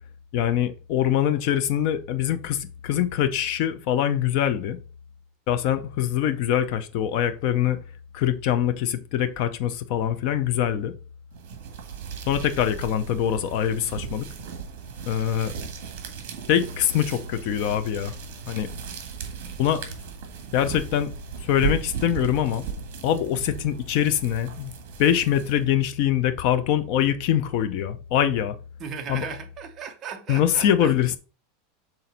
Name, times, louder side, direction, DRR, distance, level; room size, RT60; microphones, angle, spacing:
voice 1, 0.3-4.8 5.5-7.8 8.1-10.9 12.3-14.3 15.1-15.5 16.5-18.1 18.5-18.7 19.6-19.8 20.5-21.1 21.4-22.6 23.0-24.7 25.0-28.6 29.1-29.3 30.3-31.2, left 10 dB, 45° left, 0.6 m, -23 dB
sound 1, 11.3-25.8, right 7 dB, 55° right, 1.5 m, -36 dB
voice 2, 28.8-30.9, right 7 dB, 20° right, 0.7 m, -36 dB
6.0 x 3.9 x 4.1 m
supercardioid pair, 175°, 0 cm